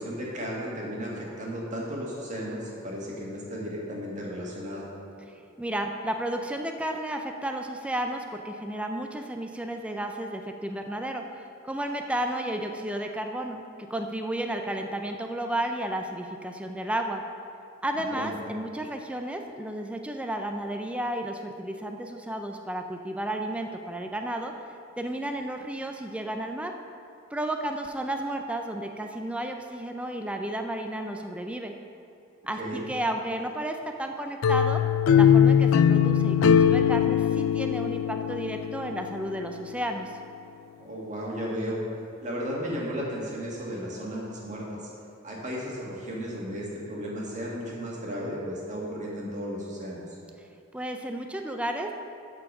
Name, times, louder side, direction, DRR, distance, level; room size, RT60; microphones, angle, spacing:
voice 1, 0.0-4.8 18.1-18.3 32.6-32.9 40.8-41.8 42.2-44.9 45.2-50.0, equal, 35° right, -4 dB, 1.9 m, -34 dB
voice 2, 5.3-17.2 17.8-24.5 25.0-26.7 27.3-31.7 32.5-34.8 35.1-40.1 50.7-51.9, right 1 dB, 5° right, 4 dB, 0.4 m, -32 dB
sound 1, 34.4-39.3, left 8 dB, 85° left, 0.4 m, -21 dB
12.0 x 4.5 x 5.4 m, 2.6 s
head